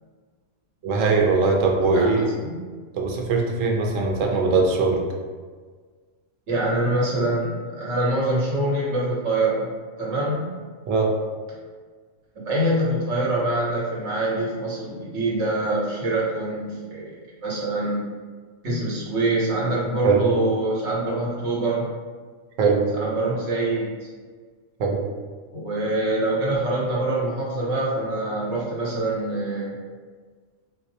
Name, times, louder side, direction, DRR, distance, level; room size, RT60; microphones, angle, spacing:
voice 1, 0.8-2.2 2.9-5.0 10.9-11.1 20.0-20.2 22.6-22.8 24.8-25.0, right 4 dB, 80° right, 1 dB, 1.0 m, -20 dB
voice 2, 1.9-2.6 6.5-9.7 10.0-10.5 12.3-18.1 18.6-21.9 22.9-24.1 25.5-29.8, right 2 dB, 65° right, -5 dB, 1.2 m, -25 dB
3.9 x 2.1 x 2.7 m, 1.5 s
omnidirectional pair, 1.3 m